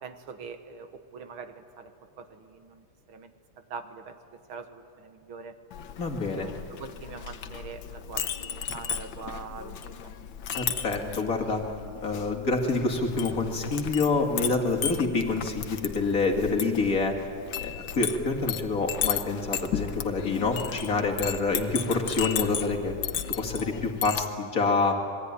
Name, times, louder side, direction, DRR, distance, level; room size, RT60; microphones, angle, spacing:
voice 1, 0.0-3.3 3.7-4.2 4.5-5.6 6.4-10.1, right 5 dB, 75° right, 9 dB, 2.2 m, -43 dB
Chink clink, 5.7-24.3, left 9 dB, 65° left, 1.6 m, -35 dB
voice 2, 6.0-6.5 10.6-11.6 12.0-17.2 17.6-23.0 23.4-25.0, left 3 dB, 40° left, 1 dB, 2.5 m, -27 dB
26.5 x 21.0 x 9.7 m, 2.3 s
omnidirectional pair, 2.4 m